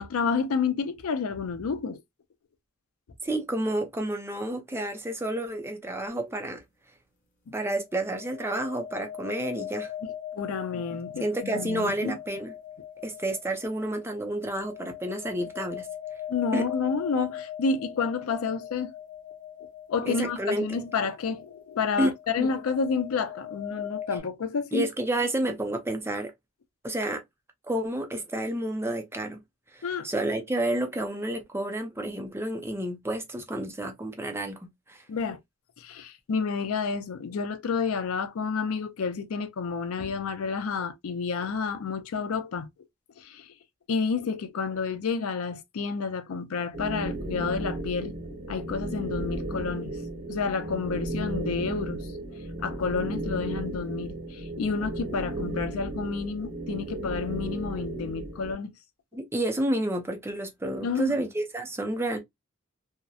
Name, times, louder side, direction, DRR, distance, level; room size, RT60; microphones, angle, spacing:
voice 1, 0.0-2.0 10.3-12.2 16.3-18.9 19.9-24.9 29.8-30.0 35.1-35.4 35.8-42.7 43.2-43.5 43.9-50.0 50.3-52.1 52.6-58.7 60.7-61.1, left 5 dB, 90° left, 0.4 m, -30 dB
voice 2, 3.2-6.6 7.5-9.9 11.2-12.5 13.0-15.9 16.5-16.6 20.0-20.8 22.0-22.5 24.7-26.3 26.8-27.2 27.7-29.4 29.7-34.6 34.9-35.0 59.1-62.2, right 1 dB, 10° right, 0.5 m, -30 dB
sound 1, 6.1-6.3 7.9-24.2, left 10 dB, 40° left, 0.7 m, -40 dB
sound 2, 46.7-58.5, right 2 dB, 50° right, 0.8 m, -34 dB
2.7 x 2.0 x 2.3 m
head